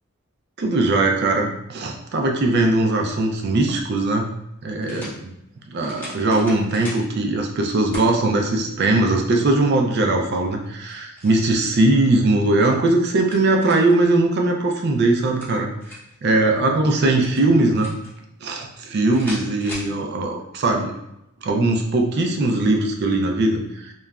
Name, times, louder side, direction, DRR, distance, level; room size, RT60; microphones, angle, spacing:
voice 1, 0.6-4.3 4.6-5.3 5.7-15.7 16.2-17.9 18.4-20.9 21.4-23.9, right 2 dB, 50° right, 2 dB, 0.4 m, -20 dB
sound 1, 3.6-3.7 4.8-5.2 5.8-7.0 7.9-8.1 8.7-8.8 10.6-11.4 12.8-14.0 15.1-16.2 17.2-18.1 19.1-19.9, left 1 dB, 10° left, 0.7 m, -38 dB
2.9 x 2.3 x 2.3 m, 0.83 s
head